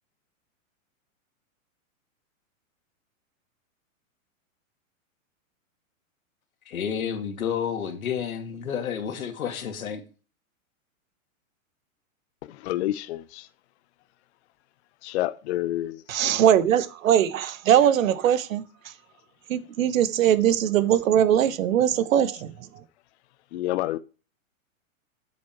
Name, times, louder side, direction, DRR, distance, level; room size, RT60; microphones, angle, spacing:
voice 1, 6.7-10.0, left 8 dB, 85° left, 2.3 m, -30 dB
voice 2, 12.6-13.5 15.0-16.0 23.5-24.0, left 15 dB, 55° left, 0.6 m, -28 dB
voice 3, 16.1-18.7 19.5-22.5, right 10 dB, 70° right, 1.1 m, -21 dB
8.4 x 6.7 x 4.5 m
hypercardioid pair, 135°, 41 cm